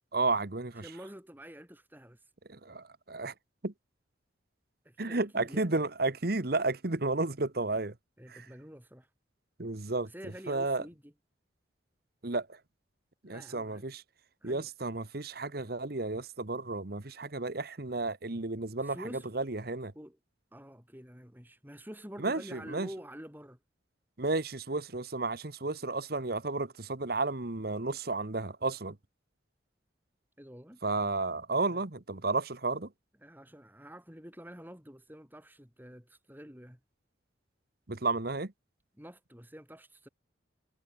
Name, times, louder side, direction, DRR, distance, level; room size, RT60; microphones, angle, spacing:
voice 1, 0.1-0.9 2.5-3.3 3.6-3.7 5.0-7.9 8.3-8.4 9.6-10.1 10.5-10.8 12.2-12.6 13.2-14.0 14.4-19.9 22.2-22.9 24.2-29.0 30.8-32.9 37.9-38.5, right 3 dB, 55° right, 1.3 m, -32 dB
voice 2, 0.7-2.3 4.8-5.7 8.2-9.1 10.0-11.1 13.2-13.8 14.4-14.7 18.8-19.3 19.9-20.2 20.5-23.6 30.4-30.8 31.7-31.8 33.2-36.8 39.0-40.1, equal, 10° right, 6.5 m, -48 dB
head